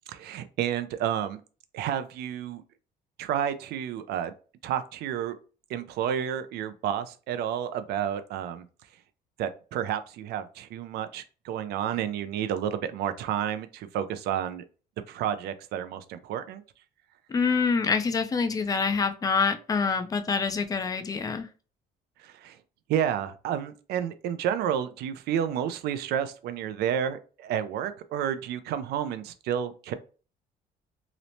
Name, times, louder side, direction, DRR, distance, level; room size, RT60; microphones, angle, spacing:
voice 1, 0.1-1.4 1.7-2.6 3.2-4.3 4.6-5.4 5.7-8.6 9.4-14.6 15.1-16.6 22.2-22.6 22.9-29.9, right 9 dB, 70° right, 11 dB, 0.4 m, -30 dB
voice 2, 17.3-21.5, left 5 dB, 20° left, 9 dB, 0.4 m, -26 dB
3.0 x 2.0 x 2.6 m, 0.36 s
cardioid pair, 110°, 17 cm